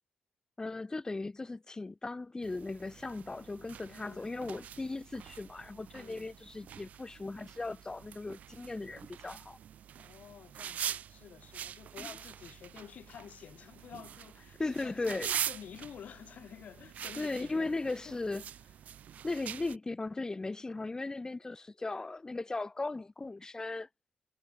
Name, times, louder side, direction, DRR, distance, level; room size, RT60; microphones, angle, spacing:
voice 1, 0.6-9.6 12.0-12.1 14.6-15.3 17.2-18.4 19.2-23.9, left 3 dB, 25° left, 1.7 m, -37 dB
sound 1, 2.4-19.8, right 9 dB, 70° right, 1.1 m, -44 dB
voice 2, 3.9-4.3 5.9-6.3 10.0-18.2 18.6-18.7, left 9 dB, 70° left, 4.4 m, -51 dB
supercardioid pair, 55°, 3 cm